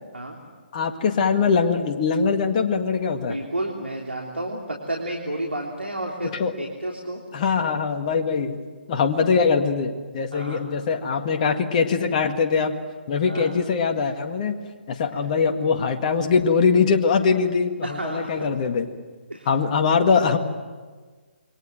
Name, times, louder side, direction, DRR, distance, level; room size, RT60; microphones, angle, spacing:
voice 1, 0.7-3.4 6.3-6.5 7.3-8.6 8.9-12.7 13.1-14.6 14.9-18.9 19.5-20.4, left 5 dB, 35° left, 4 dB, 1.9 m, -22 dB
voice 2, 3.2-7.2 10.3-10.6 13.3-13.5 17.8-18.3 19.3-19.5, right 1 dB, 90° right, 0 dB, 3.5 m, -31 dB
28.5 x 23.0 x 7.7 m, 1.4 s
figure-of-eight pair, 140°, 6 cm